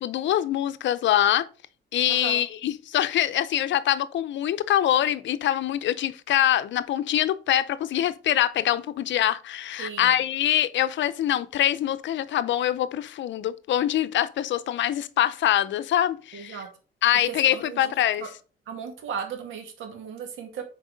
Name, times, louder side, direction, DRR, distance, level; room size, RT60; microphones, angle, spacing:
voice 1, 0.0-1.5 1.9-16.6 17.0-18.2, left 12 dB, 70° left, 0.6 m, -24 dB
voice 2, 2.1-2.4 9.8-10.1 16.3-16.7 17.5-17.8 18.7-20.6, right 7 dB, 80° right, 2.0 m, -36 dB
6.2 x 4.7 x 5.0 m
cardioid pair, 90°, 20 cm